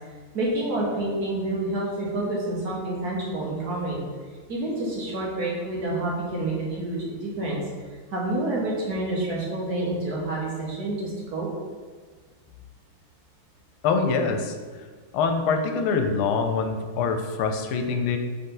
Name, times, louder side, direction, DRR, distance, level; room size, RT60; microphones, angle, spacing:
voice 1, 0.3-4.0 4.5-7.6 8.1-11.5, right 2 dB, 55° right, -4 dB, 1.6 m, -28 dB
voice 2, 13.8-14.6 15.1-18.2, left 5 dB, 85° left, 6 dB, 1.5 m, -24 dB
6.7 x 4.1 x 3.8 m, 1.5 s
omnidirectional pair, 2.3 m